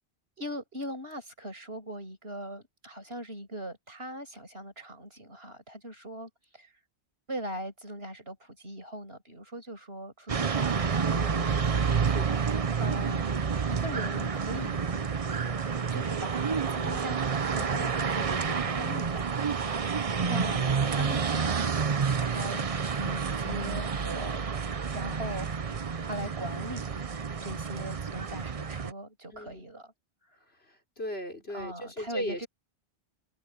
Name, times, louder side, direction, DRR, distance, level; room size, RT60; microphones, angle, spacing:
voice 1, 0.4-6.7 7.3-12.2 12.8-13.3 13.7-15.1 15.9-19.4 19.9-21.7 22.0-24.4 24.9-27.0 27.4-29.9 31.5-32.5, right 1 dB, 70° right, 7.4 m, -40 dB
sound 1, 10.3-28.9, right 6 dB, 35° right, 0.7 m, -29 dB
voice 2, 12.0-12.4 29.3-29.6 30.6-32.5, equal, 70° left, 5.6 m, -37 dB
omnidirectional pair, 1.1 m